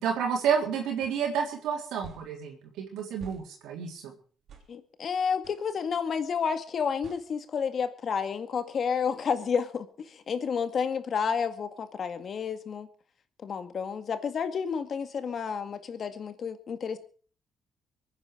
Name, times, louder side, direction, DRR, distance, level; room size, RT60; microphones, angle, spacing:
voice 1, 0.0-4.1, right 7 dB, 90° right, 0 dB, 3.7 m, -30 dB
sound 1, 1.0-1.2 2.0-2.3 3.2-3.4 4.5-4.7 5.4-5.6 7.0-7.2, right 7 dB, 65° right, 3.9 m, -48 dB
voice 2, 4.7-12.9 13.4-17.0, left 6 dB, 55° left, 9 dB, 2.0 m, -30 dB
23.5 x 9.8 x 5.0 m, 0.42 s
cardioid pair, 90°, 0 cm